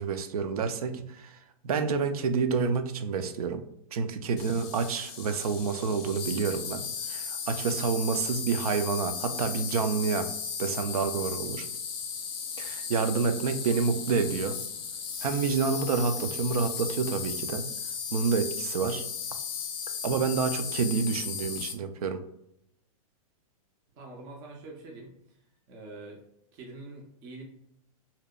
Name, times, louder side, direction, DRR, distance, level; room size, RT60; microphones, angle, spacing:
voice 1, 0.0-1.3 1.6-3.6 3.9-10.3 10.6-11.7 12.6-14.6 15.2-17.7 18.1-19.0 20.0-22.2, right 5 dB, 90° right, 9 dB, 0.4 m, -28 dB
Insect, 4.4-21.7, left 6 dB, 40° left, 0.5 m, -36 dB
voice 2, 23.9-25.4 25.7-26.2 26.5-27.4, right 2 dB, 20° right, -1 dB, 0.3 m, -45 dB
2.7 x 2.0 x 2.2 m, 0.75 s
hypercardioid pair, 155°, 18 cm